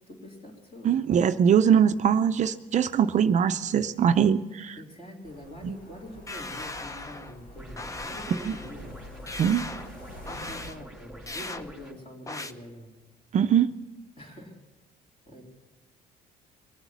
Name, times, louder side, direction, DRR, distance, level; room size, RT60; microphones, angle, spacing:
voice 1, 0.1-1.0 4.8-9.0 10.3-12.9 14.2-14.5 15.3-15.4, equal, 35° left, 0 dB, 3.7 m, -44 dB
voice 2, 0.8-4.8 5.6-5.8 8.5-8.6 9.4-9.7 13.3-13.7, right 8 dB, 45° right, 10 dB, 0.5 m, -22 dB
sound 1, 5.2-10.7, left 1 dB, 70° left, 6.8 m, -47 dB
sound 2, 6.3-7.4 7.8-8.7 9.3-9.9 10.3-10.8 11.3-11.6 12.3-12.5, left 2 dB, 20° left, 0.7 m, -38 dB
sound 3, 7.5-11.9, right 1 dB, ahead, 3.2 m, -46 dB
22.0 x 8.0 x 7.2 m, 1.2 s
cardioid pair, 110°, 17 cm